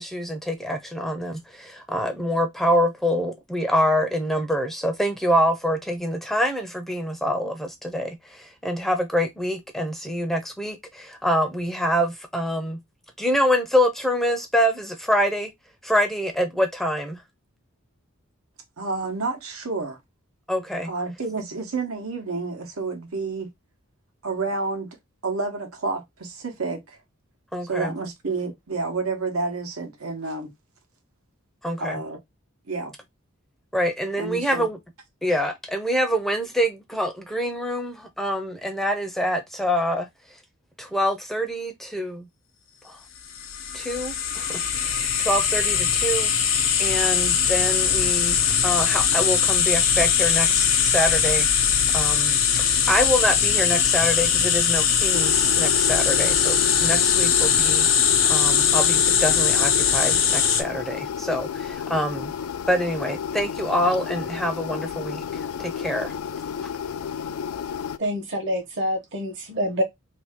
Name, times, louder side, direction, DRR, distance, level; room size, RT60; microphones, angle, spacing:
voice 1, 0.0-12.8 13.2-15.5 15.8-17.2 20.5-20.9 27.5-28.0 31.6-32.0 33.7-34.8 35.2-40.1 40.8-42.3 42.8-43.0 43.7-62.3 62.7-66.1, equal, ahead, 0.5 m, -26 dB
voice 2, 18.8-20.0 20.9-23.5 24.2-25.0 25.2-27.0 27.7-30.5 31.8-32.2 32.7-32.9 34.2-34.7, right 3 dB, 90° right, 1.1 m, -29 dB
sound 1, 43.3-60.6, left 7 dB, 65° left, 0.7 m, -21 dB
sound 2, 55.1-68.0, left 7 dB, 85° left, 0.3 m, -31 dB
voice 3, 68.0-69.8, equal, 55° right, 1.1 m, -26 dB
2.8 x 2.7 x 3.5 m
head